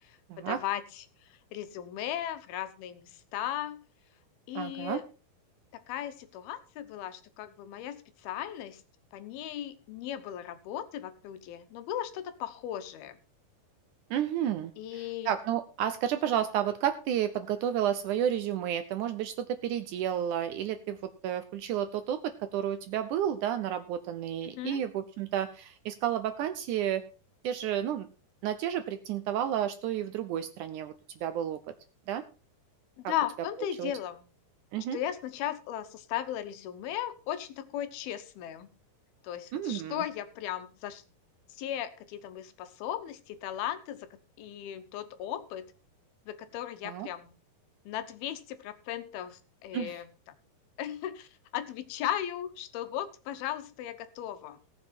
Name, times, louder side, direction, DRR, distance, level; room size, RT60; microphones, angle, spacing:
voice 1, 0.0-3.8 4.5-5.1 5.7-8.8 9.1-13.2 14.8-15.3 24.4-24.8 33.0-34.3 34.9-38.8 39.2-41.0 41.5-45.7 46.3-47.4 47.9-50.1 50.8-54.6, left 11 dB, 90° left, 10 dB, 2.9 m, -37 dB
voice 2, 4.6-5.0 14.1-14.7 15.3-19.3 19.6-21.0 21.2-27.0 27.4-28.1 28.4-30.9 31.2-31.6 32.1-32.2 33.0-33.1 33.8-33.9 34.7-35.0 39.5-40.0 46.8-47.1 49.7-50.0, right 10 dB, 75° right, 10 dB, 1.9 m, -31 dB
18.0 x 7.3 x 4.3 m, 0.33 s
omnidirectional pair, 4.2 m